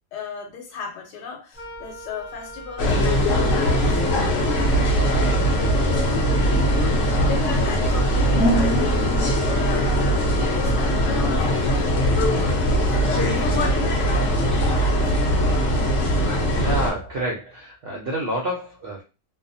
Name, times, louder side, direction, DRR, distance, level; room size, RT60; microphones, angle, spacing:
voice 1, 0.1-14.4 15.0-15.3, left 5 dB, 85° left, 2 dB, 1.2 m, -35 dB
Wind instrument woodwind instrument, 1.5-12.0, equal, 15° left, 0.4 m, -39 dB
sound 1, 2.8-16.9, equal, 60° left, 0.9 m, -20 dB
voice 2, 16.5-19.0, right 1 dB, 65° right, -2 dB, 0.6 m, -28 dB
2.7 x 2.1 x 2.6 m, 0.29 s
omnidirectional pair, 1.7 m